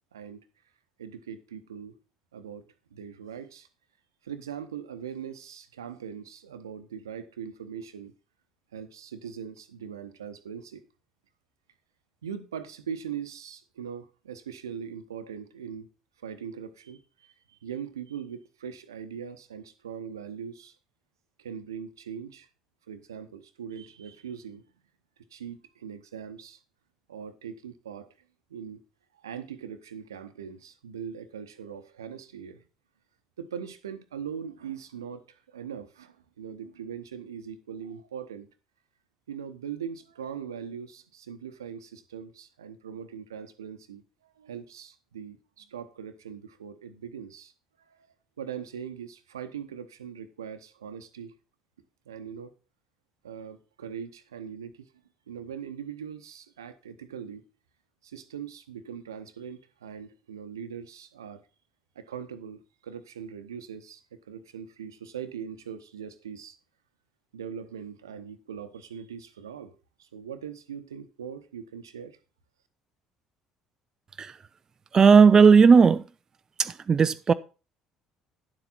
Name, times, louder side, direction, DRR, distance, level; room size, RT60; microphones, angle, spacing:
voice 1, 0.1-0.4 1.0-2.0 2.3-2.6 2.9-3.7 4.2-8.1 8.7-10.8 12.2-15.9 16.2-20.7 21.4-22.5 22.9-24.6 25.3-26.6 27.1-28.1 28.5-28.8 29.1-32.7 33.4-38.5 39.3-47.5 47.8-48.1 48.4-51.3 52.1-52.5 53.2-54.9 55.3-57.4 58.0-61.4 62.0-66.6 67.3-72.2, right 7 dB, 75° right, 0.9 m, -41 dB
voice 2, 74.9-76.0 76.6-77.3, right 5 dB, 30° right, 0.4 m, -16 dB
10.5 x 7.7 x 4.2 m
figure-of-eight pair, 55°, 2 cm